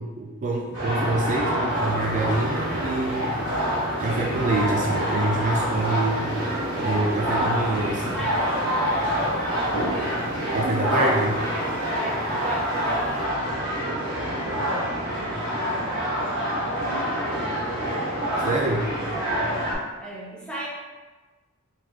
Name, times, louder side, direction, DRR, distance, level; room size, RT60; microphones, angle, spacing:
voice 1, 0.0-3.4 4.0-6.3 6.8-8.2 10.5-11.4 18.4-18.9, right 2 dB, 35° right, 0 dB, 0.3 m, -26 dB
sound 1, 0.7-19.7, equal, 55° right, 1.4 m, -26 dB
sound 2, 1.7-13.3, right 1 dB, 85° right, 0.7 m, -40 dB
voice 2, 8.1-10.0 12.0-13.3 14.1-15.3 16.7-17.6 18.9-19.0 20.0-20.7, right 1 dB, 5° left, -5 dB, 0.8 m, -38 dB
3.4 x 3.2 x 3.1 m, 1.2 s
head